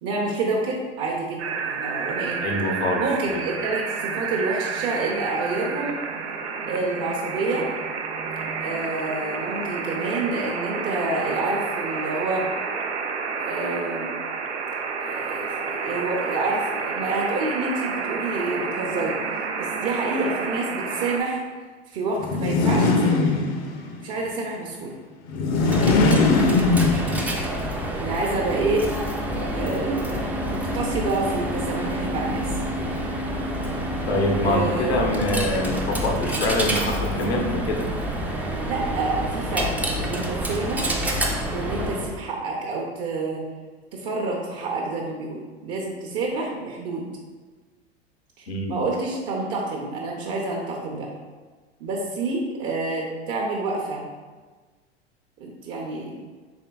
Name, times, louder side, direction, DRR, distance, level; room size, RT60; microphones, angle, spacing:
voice 1, 0.0-2.4 3.0-6.0 6.7-7.7 8.6-12.5 13.4-14.1 15.0-21.4 21.9-23.4 24.0-24.9 27.9-28.9 29.5-32.5 34.4-35.0 38.6-39.7 40.0-40.9 41.5-43.4 43.9-47.1 48.4-51.1 51.8-54.0 55.4-56.2, right 3 dB, 50° right, -1 dB, 0.6 m, -28 dB
sound 1, 1.4-21.2, right 5 dB, 90° right, 0.5 m, -30 dB
voice 2, 2.4-3.0 3.3-3.4 26.8-27.3 34.1-37.9 48.5-48.8, left 1 dB, 85° left, 2 dB, 0.7 m, -25 dB
sound 2, 22.2-23.9 25.3-27.5, left 3 dB, 50° left, 0.5 m, -20 dB
Coin (dropping), 25.5-42.2, right 1 dB, 5° right, 0.3 m, -27 dB
4.4 x 3.3 x 2.2 m, 1.4 s
hypercardioid pair, 90°, 32 cm